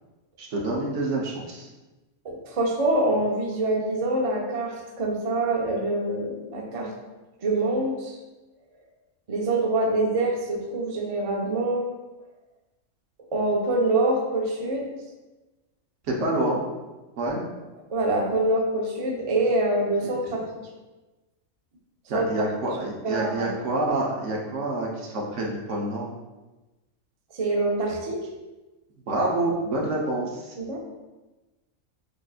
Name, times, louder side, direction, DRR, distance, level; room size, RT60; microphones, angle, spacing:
voice 1, 0.4-1.7 16.1-16.6 17.2-17.4 22.1-26.1 29.1-30.5, right 2 dB, 65° right, -2 dB, 1.1 m, -27 dB
voice 2, 2.2-6.9 7.4-8.2 9.3-11.9 13.3-14.9 17.9-20.4 22.1-22.3 23.0-23.6 27.4-28.2 30.6-30.8, right 2 dB, 50° right, -1 dB, 0.4 m, -25 dB
6.4 x 2.4 x 2.4 m, 1.1 s
omnidirectional pair, 1.4 m